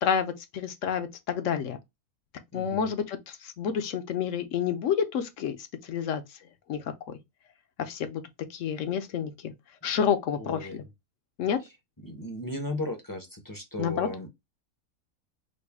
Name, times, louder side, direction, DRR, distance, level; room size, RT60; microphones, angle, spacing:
voice 1, 0.0-1.8 2.5-5.6 5.8-6.2 6.7-7.2 7.8-8.2 8.5-9.5 9.8-10.8 11.4-11.6 13.8-14.1, left 7 dB, 65° left, 0.9 m, -29 dB
voice 2, 2.5-2.9 10.3-10.9 11.6-11.7 12.0-14.3, left 1 dB, 20° left, 0.5 m, -36 dB
3.9 x 2.1 x 3.4 m
omnidirectional pair, 1.5 m